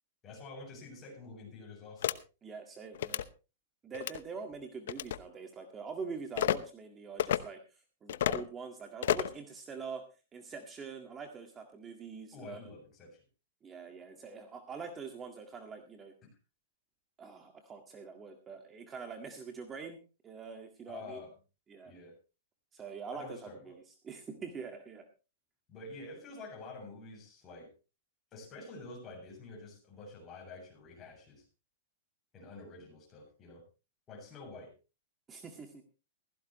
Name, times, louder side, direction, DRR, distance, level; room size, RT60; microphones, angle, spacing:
voice 1, 0.2-2.2 12.3-13.2 20.9-21.3 21.8-22.2 23.1-23.8 25.7-27.7 28.3-31.5 32.3-33.6 34.1-34.7, left 3 dB, 25° left, 1 dB, 7.4 m, -48 dB
sound 1, 2.0-2.2 3.0-3.3 3.9-4.2 4.9-5.2 6.4-6.6 7.2-7.4 8.1-8.4 9.0-9.4, left 11 dB, 70° left, 0.8 m, -30 dB
voice 2, 2.4-3.2 3.8-7.6 8.0-10.0 10.3-12.6 13.6-16.1 17.2-20.0 20.2-21.2 21.7-21.9 22.7-25.1 35.3-35.8, right 5 dB, 20° right, 5 dB, 1.9 m, -44 dB
16.0 x 14.5 x 3.1 m, 0.31 s
hypercardioid pair, 140°, 0 cm